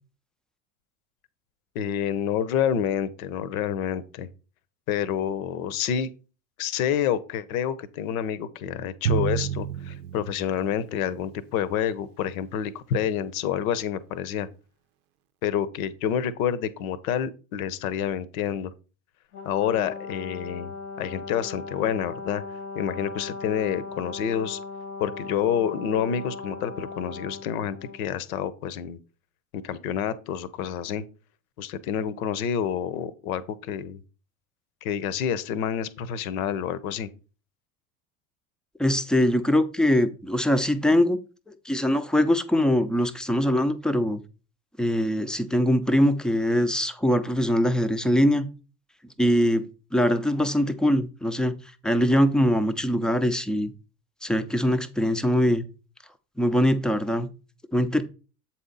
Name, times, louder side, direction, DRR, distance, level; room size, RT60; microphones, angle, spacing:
voice 1, 1.7-4.3 4.9-6.1 6.6-14.5 15.4-18.7 19.4-22.4 22.7-24.6 25.0-29.0 29.5-31.0 31.6-34.0 34.8-37.1, left 9 dB, 65° left, 0.8 m, -28 dB
Drum, 9.1-11.4, right 9 dB, 70° right, 0.6 m, -30 dB
Brass instrument, 19.3-28.0, left 3 dB, 90° left, 1.3 m, -38 dB
voice 2, 38.8-41.2 41.7-44.2 44.8-48.5 49.2-49.6 49.9-51.5 51.8-53.7 54.2-55.6 56.4-57.3 57.7-58.0, equal, ahead, 0.4 m, -22 dB
7.7 x 4.3 x 3.9 m
hypercardioid pair, 75°, 45 cm